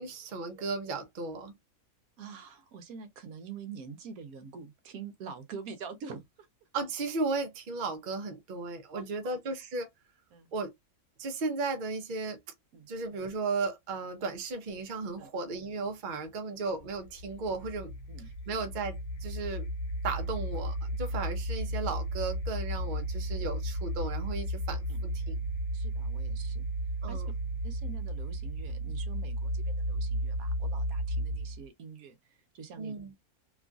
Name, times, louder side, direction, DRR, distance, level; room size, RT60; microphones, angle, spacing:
voice 1, 0.0-1.6 6.7-9.9 10.5-10.7 11.2-12.4 12.9-17.9 18.5-19.7 20.0-25.4 27.0-27.3 32.8-33.1, right 3 dB, 50° right, 0.6 m, -35 dB
voice 2, 2.2-6.5 8.9-9.4 10.3-10.5 12.7-12.9 15.2-15.3 18.1-18.3 18.5-18.7 24.9-25.0 25.7-26.6 27.1-27.2 27.6-33.0, right 6 dB, 75° right, 1.1 m, -46 dB
sound 1, 16.8-31.7, right 1 dB, 85° left, 1.2 m, -34 dB
3.0 x 2.4 x 2.4 m
omnidirectional pair, 1.6 m